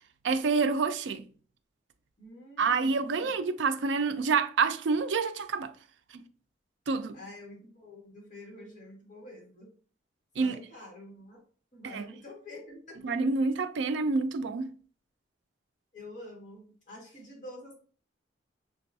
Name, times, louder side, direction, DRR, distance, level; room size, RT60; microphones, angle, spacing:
voice 1, 0.2-1.2 2.6-5.7 6.1-6.2 6.9-7.2 10.4-10.6 11.9-12.1 13.0-14.7, right 4 dB, 75° right, 0.4 m, -27 dB
voice 2, 2.2-3.3 7.1-9.7 10.4-11.4 11.7-13.0 15.9-17.7, left 1 dB, 45° left, 1.7 m, -47 dB
5.9 x 2.2 x 2.6 m
head